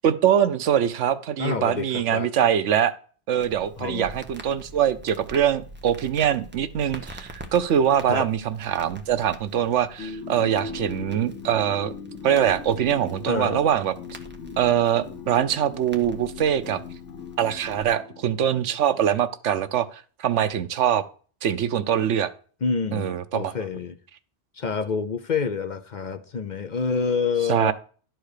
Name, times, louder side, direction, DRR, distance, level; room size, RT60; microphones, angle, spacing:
voice 1, 0.0-2.9 3.3-11.9 12.2-13.9 14.6-16.8 17.4-21.0 21.4-22.3 22.9-23.5 27.5-27.7, right 9 dB, 85° right, 1.1 m, -23 dB
voice 2, 1.4-2.3 3.8-4.1 8.1-8.3 13.3-13.6 22.6-24.0 24.5-27.7, left 5 dB, 50° left, 0.7 m, -27 dB
Crackle, 3.4-17.8, right 1 dB, 10° right, 1.0 m, -45 dB
sound 1, 10.0-18.7, left 5 dB, 85° left, 1.1 m, -39 dB
11.5 x 4.6 x 6.6 m
omnidirectional pair, 1.2 m